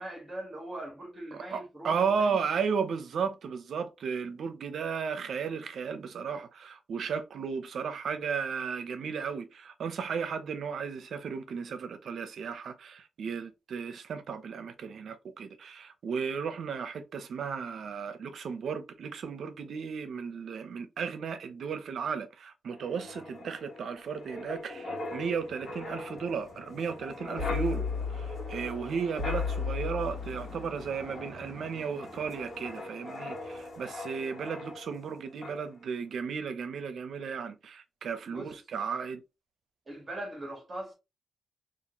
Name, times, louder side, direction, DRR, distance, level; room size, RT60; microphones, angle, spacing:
voice 1, 0.0-2.4 38.3-38.6 39.9-40.9, right 1 dB, 25° right, 1.3 m, -41 dB
voice 2, 1.3-27.9 28.1-39.2, right 6 dB, 65° right, 0.6 m, -34 dB
Wind, 22.7-35.1 35.4-35.7, left 4 dB, 55° left, 1.3 m, -38 dB
4.1 x 2.5 x 2.9 m
wide cardioid pair, 140°, 0 cm